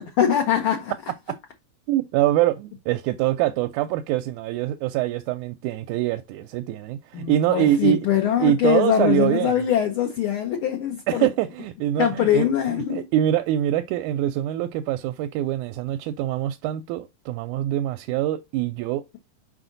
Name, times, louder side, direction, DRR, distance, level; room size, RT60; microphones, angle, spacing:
voice 1, 0.2-0.9 7.1-11.3 12.0-13.0, left 10 dB, 75° left, 1.2 m, -22 dB
voice 2, 1.9-8.0 8.4-9.6 11.1-19.0, right 13 dB, 85° right, 2.0 m, -24 dB
6.0 x 5.0 x 3.9 m
omnidirectional pair, 3.5 m